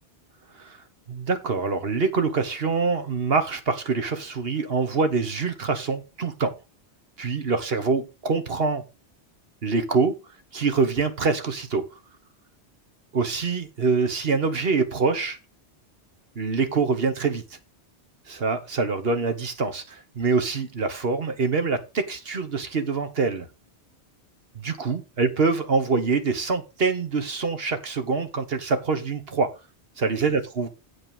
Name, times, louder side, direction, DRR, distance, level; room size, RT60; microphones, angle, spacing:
voice 1, 1.1-6.5 7.2-8.8 9.6-10.1 10.5-11.8 13.1-15.4 16.3-17.6 18.3-23.5 24.5-29.5 30.0-30.7, right 4 dB, 60° right, 1.5 m, -25 dB
8.4 x 5.4 x 5.4 m
omnidirectional pair, 1.2 m